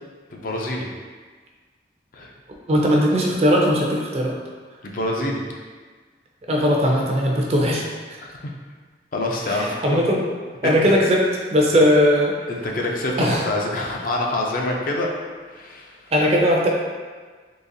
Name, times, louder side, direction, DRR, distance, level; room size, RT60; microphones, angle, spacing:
voice 1, 0.3-0.9 2.1-2.3 4.8-5.4 8.2-8.5 9.1-10.0 10.6-10.9 12.5-15.1 15.5-16.0, left 1 dB, 50° left, -1 dB, 0.4 m, -26 dB
voice 2, 2.7-4.3 6.5-8.2 9.5-10.2 10.6-12.3 13.2-13.4 16.1-16.7, equal, 35° right, -1 dB, 0.5 m, -19 dB
3.9 x 2.9 x 2.6 m, 1.5 s
head